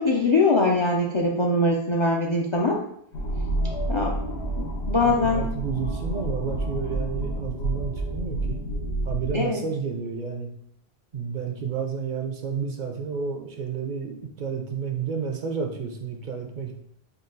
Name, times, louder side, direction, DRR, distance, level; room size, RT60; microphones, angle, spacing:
voice 1, 0.0-2.8 3.9-4.2 4.6-5.5 9.3-9.6, left 2 dB, 45° left, -1 dB, 0.4 m, -22 dB
sound 1, 3.1-9.3, right 1 dB, 90° left, 1.0 m, -29 dB
voice 2, 5.0-8.6 9.0-10.5 11.1-16.7, right 6 dB, 60° right, 3 dB, 0.6 m, -31 dB
3.8 x 2.3 x 3.8 m, 0.67 s
omnidirectional pair, 1.0 m